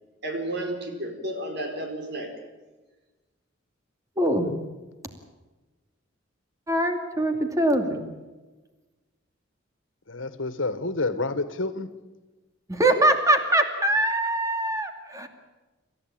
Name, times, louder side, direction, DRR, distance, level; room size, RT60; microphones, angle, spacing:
voice 1, 0.2-2.3, right 1 dB, 60° right, 4 dB, 4.9 m, -32 dB
voice 2, 4.2-4.5 6.7-8.0 12.7-15.3, right 1 dB, 15° right, 5 dB, 2.6 m, -23 dB
voice 3, 10.1-11.9, left 3 dB, 90° left, 12 dB, 1.7 m, -28 dB
27.5 x 14.5 x 8.8 m, 1.2 s
head